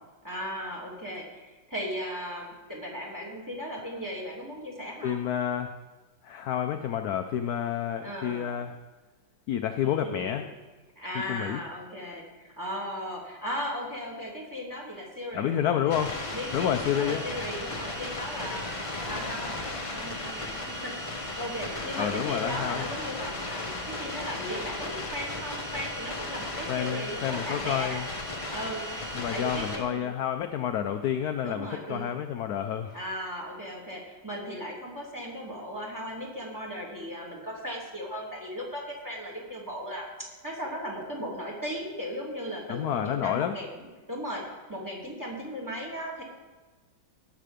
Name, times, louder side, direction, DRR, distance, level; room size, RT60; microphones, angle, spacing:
voice 1, 0.2-5.3 8.0-8.5 9.8-10.5 11.0-16.0 16.3-28.0 28.5-28.8 29.3-30.1 31.4-32.2 32.9-44.4 44.7-46.2, equal, 10° right, -2 dB, 2.8 m, -37 dB
voice 2, 5.0-5.7 6.2-8.8 9.5-10.5 11.1-11.6 15.3-16.1 16.5-17.2 22.0-22.9 26.7-28.1 29.1-33.0 42.7-43.5, left 9 dB, 70° left, 7 dB, 1.0 m, -29 dB
sound 1, 15.9-29.8, left 2 dB, 20° left, 1.1 m, -35 dB
17.5 x 6.7 x 5.1 m, 1.3 s
omnidirectional pair, 2.1 m